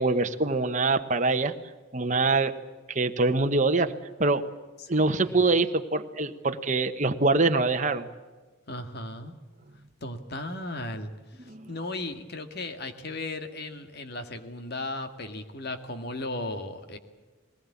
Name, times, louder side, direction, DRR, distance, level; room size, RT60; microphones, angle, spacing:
voice 1, 0.0-1.5 1.9-2.5 2.9-3.9 4.2-4.4 4.9-8.1 11.4-11.7, right 3 dB, 40° right, 8 dB, 1.2 m, -24 dB
voice 2, 5.0-5.4 8.7-9.3 10.0-11.1 11.7-17.0, left 2 dB, 55° left, 7 dB, 2.0 m, -36 dB
21.0 x 19.5 x 8.5 m, 1.3 s
head